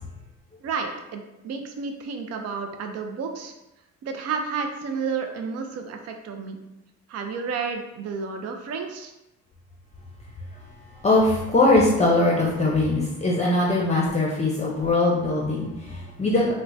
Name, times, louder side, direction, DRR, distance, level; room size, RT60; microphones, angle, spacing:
voice 1, 0.6-3.5 4.0-6.6 7.1-9.1, right 5 dB, 55° right, 4 dB, 0.5 m, -31 dB
voice 2, 11.0-16.5, left 2 dB, 20° left, -3 dB, 0.6 m, -21 dB
4.5 x 2.1 x 2.6 m, 0.93 s
cardioid pair, 90°, 30 cm